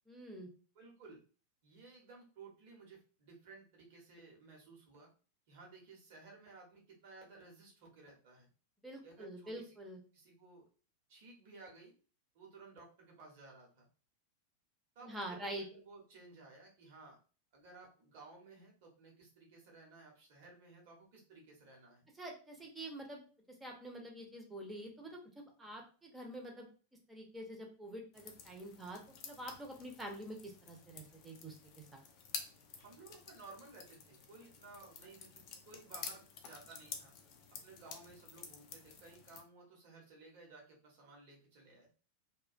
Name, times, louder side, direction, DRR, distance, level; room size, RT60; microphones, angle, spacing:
voice 1, 0.1-0.5 8.8-10.0 15.0-15.7 22.2-25.2 25.6-26.7 27.1-31.6 31.9-32.0, right 1 dB, 10° right, 1 dB, 0.6 m, -46 dB
voice 2, 0.7-1.2 1.6-5.1 5.5-8.5 9.0-9.8 10.1-10.6 11.1-11.9 12.3-13.9 14.9-17.2 17.5-22.1 32.8-37.1 37.6-41.9, right 3 dB, 50° right, -1 dB, 0.9 m, -57 dB
sound 1, 28.1-39.4, left 6 dB, 40° left, 0.4 m, -50 dB
2.4 x 2.2 x 2.4 m, 0.37 s
figure-of-eight pair, 90°, 0 cm